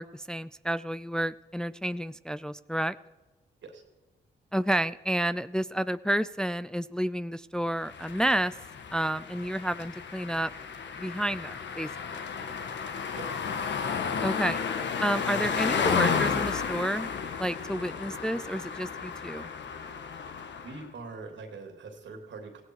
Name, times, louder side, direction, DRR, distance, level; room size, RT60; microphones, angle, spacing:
voice 1, 0.0-3.0 4.5-8.5 8.9-10.5 11.0-11.9 14.2-14.6 15.0-17.1 17.4-19.5, right 1 dB, 5° left, 14 dB, 0.4 m, -30 dB
sound 1, 7.8-20.8, left 6 dB, 70° left, 1.4 m, -32 dB
voice 2, 20.6-22.6, right 3 dB, 75° right, 4 dB, 3.0 m, -43 dB
17.0 x 16.0 x 4.8 m, 1.2 s
cardioid pair, 70°, 19 cm